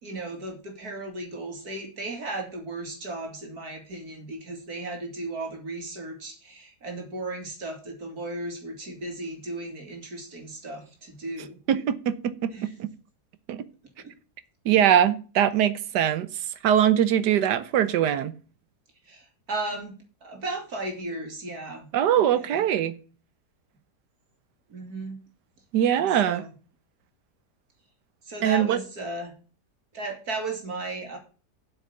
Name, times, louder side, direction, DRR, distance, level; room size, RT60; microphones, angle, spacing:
voice 1, 0.0-11.6 12.5-12.7 14.0-14.1 19.0-21.9 22.3-22.6 24.7-25.2 26.2-26.5 28.2-29.3 29.9-31.2, right 2 dB, 65° right, 3.1 m, -35 dB
voice 2, 11.7-12.5 12.8-12.9 13.5-13.6 14.6-16.3 16.6-18.3 21.9-23.0 25.7-26.4 28.4-28.8, right 10 dB, 85° right, 1.5 m, -22 dB
8.2 x 6.3 x 7.0 m
omnidirectional pair, 1.8 m